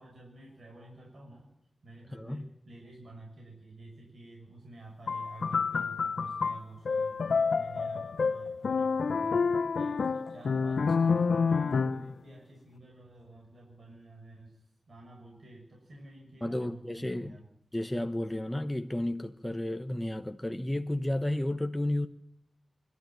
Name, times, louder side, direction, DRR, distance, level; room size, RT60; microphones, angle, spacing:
voice 1, 0.0-1.5 1.8-17.5, right 2 dB, 55° right, 6.4 m, -51 dB
voice 2, 2.1-2.5 16.4-17.4 17.7-22.1, left 1 dB, 10° left, 1.1 m, -32 dB
sound 1, 5.1-12.1, left 5 dB, 75° left, 1.0 m, -28 dB
25.0 x 13.0 x 9.2 m
wide cardioid pair, 120°, 0 cm